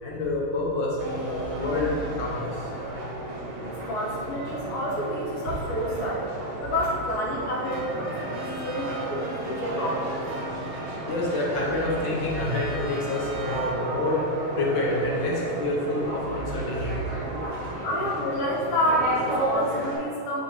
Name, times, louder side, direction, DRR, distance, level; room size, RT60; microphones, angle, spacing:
voice 1, 0.0-2.7 11.1-18.1, left 2 dB, 60° left, -4 dB, 1.5 m, -28 dB
sound 1, 1.0-20.0, right 1 dB, 55° right, 2.0 m, -33 dB
voice 2, 3.7-6.2 6.6-10.1 17.8-20.4, equal, 85° left, -3 dB, 2.1 m, -29 dB
sound 2, 7.6-14.2, right 2 dB, 75° right, 1.9 m, -40 dB
9.1 x 3.8 x 3.4 m, 2.5 s
omnidirectional pair, 2.4 m